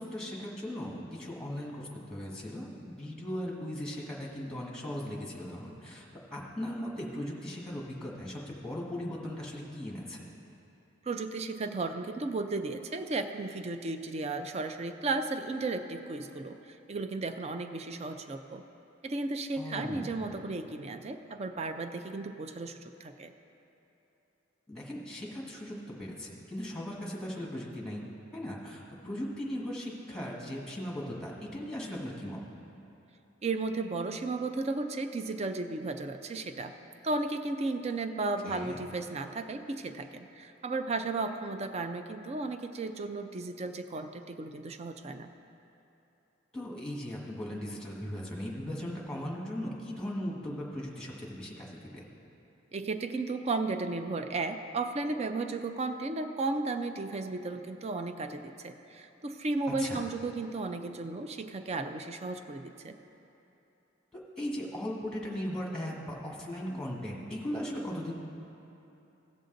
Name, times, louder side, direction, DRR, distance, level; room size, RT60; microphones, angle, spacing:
voice 1, 0.0-6.0 6.3-10.2 19.6-20.2 24.7-28.0 28.3-32.4 38.4-38.8 46.5-52.0 59.7-60.0 64.1-68.1, equal, 5° left, -3 dB, 1.5 m, -38 dB
voice 2, 11.1-16.6 16.9-18.6 19.0-23.3 33.4-36.7 37.0-45.3 52.7-63.0, right 3 dB, 30° right, 7 dB, 0.4 m, -34 dB
17.0 x 6.6 x 3.9 m, 3.0 s
head